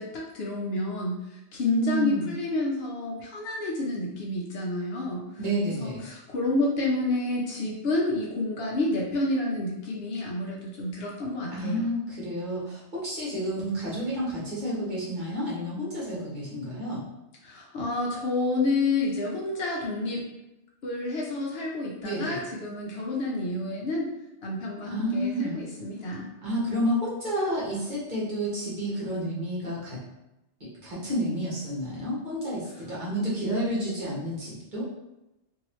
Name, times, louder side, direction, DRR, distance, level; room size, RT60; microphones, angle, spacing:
voice 1, 0.0-5.2 5.8-11.9 17.4-20.2 20.8-24.1 24.4-26.3, left 2 dB, 65° left, -2 dB, 0.8 m, -29 dB
voice 2, 1.6-2.3 5.4-6.0 11.5-17.0 22.0-22.4 24.9-25.6 26.4-30.0 30.8-34.9, equal, 45° right, -8 dB, 1.2 m, -30 dB
2.9 x 2.7 x 2.9 m, 0.93 s
omnidirectional pair, 1.2 m